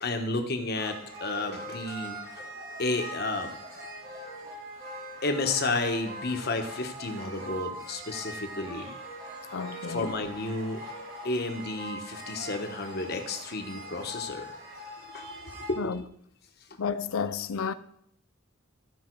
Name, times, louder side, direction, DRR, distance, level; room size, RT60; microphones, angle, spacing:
voice 1, 0.0-2.2 2.8-3.5 5.2-8.9 9.9-10.8 11.2-14.5 15.1-15.3 15.7-15.9, left 2 dB, 50° left, 1.2 m, -31 dB
sound 1, 0.7-15.7, right 1 dB, 65° right, 4.2 m, -42 dB
voice 2, 9.5-10.2 15.8-16.0 16.8-17.7, left 6 dB, 85° left, 0.5 m, -32 dB
14.5 x 5.4 x 4.6 m
head